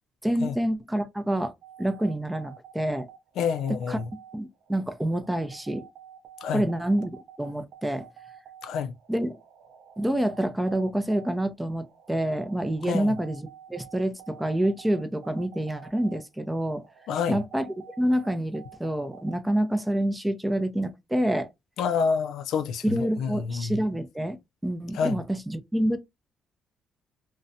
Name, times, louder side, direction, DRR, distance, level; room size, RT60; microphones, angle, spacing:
voice 1, 0.2-1.5 1.8-3.1 3.9-4.0 4.3-5.8 6.5-8.1 9.1-9.4 10.0-16.8 17.3-21.5 22.8-24.4 24.6-26.0, right 1 dB, 10° right, 0.5 m, -27 dB
sound 1, 1.6-19.6, right 9 dB, 80° right, 0.5 m, -50 dB
voice 2, 3.4-4.1 6.4-6.7 8.6-8.9 12.9-13.1 17.1-17.4 21.8-23.8 24.9-25.2, left 6 dB, 80° left, 0.3 m, -28 dB
2.5 x 2.1 x 2.6 m
cardioid pair, 90°, 0 cm